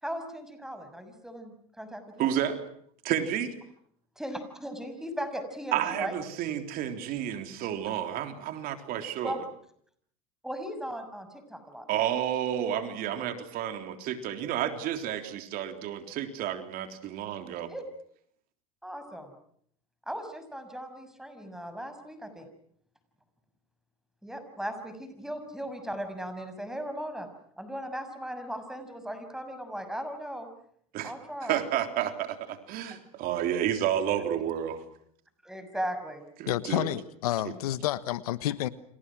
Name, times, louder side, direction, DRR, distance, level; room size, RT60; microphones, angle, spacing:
voice 1, 0.0-2.3 4.2-6.1 9.2-9.4 10.4-12.1 17.7-17.8 18.8-19.3 20.1-22.5 24.2-27.3 27.6-30.5 31.0-31.6 35.4-36.2 37.5-37.6, equal, ahead, 8 dB, 6.6 m, -37 dB
voice 2, 2.2-2.6 3.0-3.5 5.7-9.4 11.9-17.7 30.9-31.1 31.4-34.8 36.4-36.9, right 10 dB, 50° right, 7 dB, 3.6 m, -31 dB
voice 3, 36.5-38.7, left 14 dB, 85° left, 15 dB, 1.4 m, -30 dB
30.0 x 26.5 x 6.2 m, 0.66 s
supercardioid pair, 105°, 19 cm